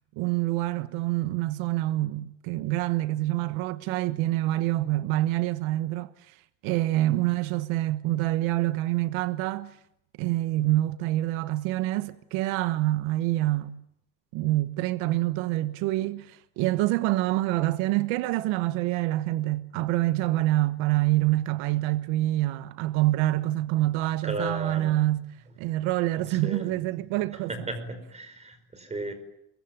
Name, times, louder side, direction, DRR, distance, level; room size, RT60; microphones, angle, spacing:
voice 1, 0.2-6.4 6.6-9.8 10.2-13.8 14.3-27.7, right 16 dB, 85° right, 1.3 m, -26 dB
voice 2, 24.2-25.0 26.3-26.8 27.5-29.1, right 2 dB, 15° right, 5.1 m, -35 dB
26.0 x 23.5 x 9.3 m
cardioid pair, 160°, 47 cm